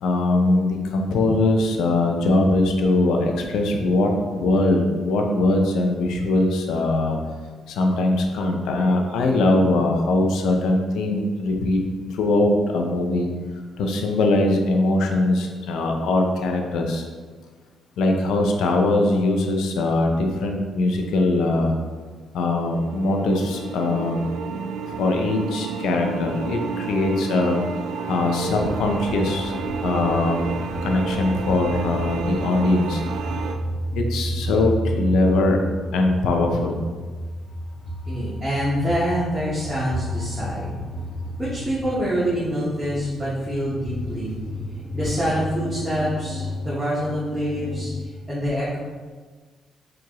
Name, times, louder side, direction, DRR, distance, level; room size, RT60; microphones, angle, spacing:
voice 1, 0.0-7.2 7.7-11.8 12.1-13.3 13.8-17.0 18.0-21.7 22.3-24.2 25.0-27.6 28.1-29.5 29.8-30.4 30.8-33.0 34.0-35.6 35.9-36.8, left 2 dB, 85° left, 3 dB, 0.4 m, -21 dB
sound 1, 22.4-33.5, right 5 dB, 85° right, 0.3 m, -31 dB
sound 2, 28.6-48.1, equal, 30° left, 1.2 m, -31 dB
voice 2, 38.1-40.8 41.4-44.3 44.9-47.9 48.3-48.8, equal, 15° right, -8 dB, 0.9 m, -26 dB
4.5 x 2.4 x 2.9 m, 1.4 s
cardioid pair, 90°, 0 cm